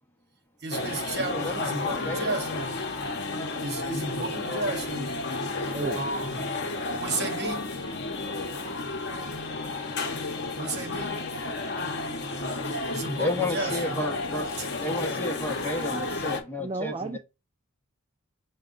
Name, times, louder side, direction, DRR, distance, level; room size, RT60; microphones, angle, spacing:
voice 1, 0.6-2.8 3.6-5.2 5.9-6.4 7.0-7.6 10.6-11.2 12.9-14.1 14.6-14.7, right 2 dB, 50° right, 1.0 m, -33 dB
sound 1, 0.7-16.4, left 3 dB, 50° left, 0.8 m, -32 dB
voice 2, 1.3-2.3 13.2-14.5 14.8-17.2, left 1 dB, 10° left, 0.9 m, -32 dB
voice 3, 5.7-6.1 6.6-6.7 7.1-7.3 16.6-17.2, right 3 dB, 25° right, 0.3 m, -33 dB
5.7 x 2.3 x 3.8 m
head